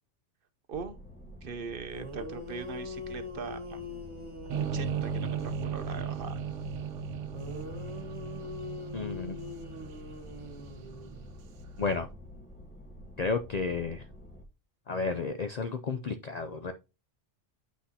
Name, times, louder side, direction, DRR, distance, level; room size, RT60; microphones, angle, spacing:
sound 1, 0.7-14.4, equal, 10° left, 0.8 m, -49 dB
voice 1, 1.4-3.8 4.6-6.4, right 5 dB, 55° right, 0.8 m, -41 dB
sound 2, 1.6-1.7 1.9-6.1 7.3-11.4, left 3 dB, 25° right, 1.4 m, -43 dB
sound 3, 4.5-11.6, right 6 dB, 90° right, 1.1 m, -36 dB
voice 2, 8.9-9.4 11.8-12.1 13.2-14.0 14.9-16.7, left 4 dB, 55° left, 0.4 m, -32 dB
8.3 x 5.9 x 2.7 m
omnidirectional pair, 1.2 m